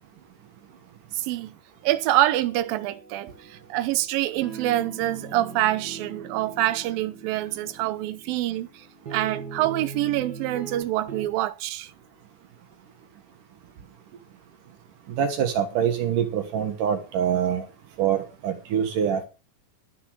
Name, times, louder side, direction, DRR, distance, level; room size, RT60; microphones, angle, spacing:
voice 1, 1.1-1.5 1.8-11.9, right 14 dB, 90° right, 2.6 m, -26 dB
sound 1, 2.5-11.3, right 5 dB, 35° right, 2.0 m, -41 dB
voice 2, 15.1-17.7 18.0-19.3, right 8 dB, 70° right, 3.0 m, -25 dB
13.5 x 6.8 x 6.5 m
omnidirectional pair, 4.0 m